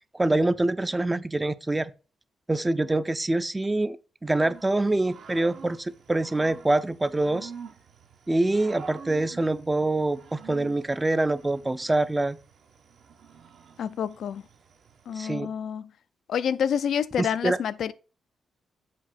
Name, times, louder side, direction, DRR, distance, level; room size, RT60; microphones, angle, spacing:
voice 1, 0.1-1.9 2.5-4.0 4.2-7.5 8.3-12.4 15.2-15.5 17.2-17.6, right 2 dB, 15° right, 0.4 m, -25 dB
Growling / Cricket, 4.3-15.3, right 6 dB, 70° right, 0.9 m, -48 dB
voice 2, 13.8-14.4 15.1-15.9 16.3-17.9, left 8 dB, 75° left, 0.3 m, -28 dB
7.4 x 2.7 x 5.6 m
cardioid pair, 95°, 0 cm